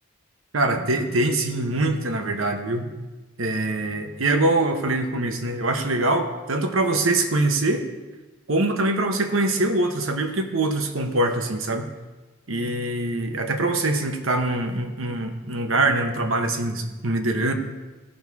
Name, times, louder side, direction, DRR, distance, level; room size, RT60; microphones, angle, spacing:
voice 1, 0.5-2.9 3.4-7.8 8.5-11.9 12.5-17.5, right 2 dB, 70° right, 5 dB, 1.0 m, -23 dB
15.5 x 6.2 x 3.6 m, 1.2 s
head